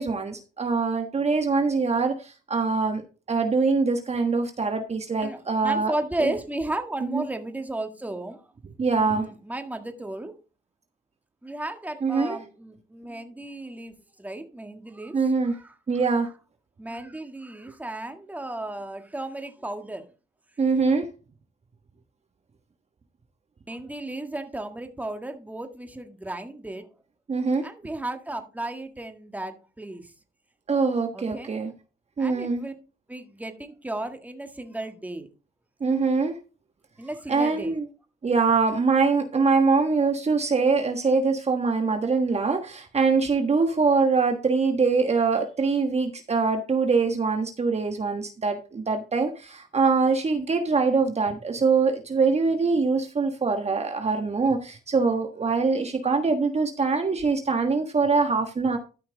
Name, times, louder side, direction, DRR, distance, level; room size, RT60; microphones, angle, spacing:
voice 1, 0.0-5.9 6.2-6.3 7.0-7.2 8.8-9.3 12.0-12.4 15.1-15.5 15.9-16.3 20.6-21.1 27.3-27.7 30.7-31.7 32.2-32.6 35.8-36.4 37.3-37.9 38.2-58.8, right 4 dB, 35° right, 1.3 m, -23 dB
voice 2, 5.2-8.5 8.9-10.3 11.4-16.2 16.8-20.1 23.7-26.9 27.6-30.1 31.1-31.6 32.2-32.7 33.1-35.3 37.0-37.7, right 1 dB, 10° right, 1.6 m, -34 dB
13.0 x 5.7 x 3.9 m
cardioid pair, 90°, 20 cm